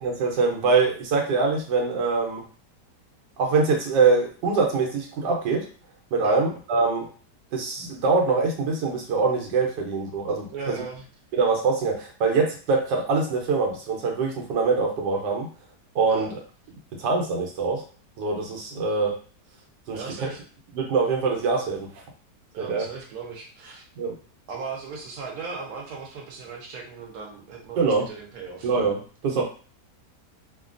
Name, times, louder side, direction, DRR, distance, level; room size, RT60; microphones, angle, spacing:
voice 1, 0.0-2.4 3.4-5.7 6.1-7.1 7.5-10.8 11.3-15.5 15.9-16.3 17.0-17.8 18.2-19.2 19.9-20.0 20.7-21.9 22.6-22.9 24.0-24.2 27.8-28.0 28.6-29.4, right 4 dB, 90° right, 0 dB, 1.3 m, -24 dB
voice 2, 10.5-11.1 16.1-16.3 19.9-20.4 22.5-23.8 24.5-28.7, right 4 dB, 65° right, 0 dB, 1.2 m, -37 dB
3.2 x 2.2 x 2.5 m, 0.39 s
omnidirectional pair, 1.8 m